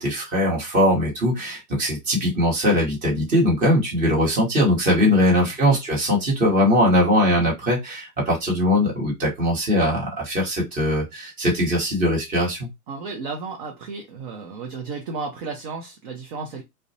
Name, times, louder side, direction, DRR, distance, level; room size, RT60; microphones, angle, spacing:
voice 1, 0.0-12.7, left 1 dB, 15° right, 1.1 m, -21 dB
voice 2, 12.9-16.6, right 4 dB, 35° right, 0.5 m, -33 dB
2.4 x 2.1 x 2.7 m
hypercardioid pair, 135°, 47 cm